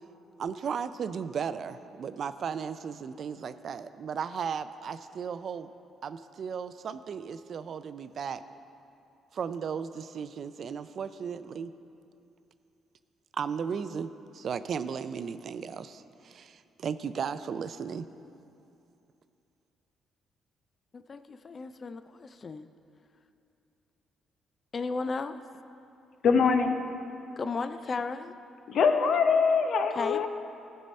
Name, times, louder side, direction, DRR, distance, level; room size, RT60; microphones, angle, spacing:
voice 1, 0.4-5.7 6.0-8.4 9.3-11.7 13.3-18.1, right 6 dB, 55° right, 12 dB, 0.4 m, -35 dB
voice 2, 20.9-22.7 24.7-25.4 27.4-28.3 29.9-30.3, left 4 dB, 40° left, 10 dB, 0.3 m, -34 dB
voice 3, 26.2-26.8 28.7-30.3, left 5 dB, 65° left, 7 dB, 0.7 m, -23 dB
14.5 x 5.5 x 4.2 m, 2.7 s
cardioid pair, 90°, 0 cm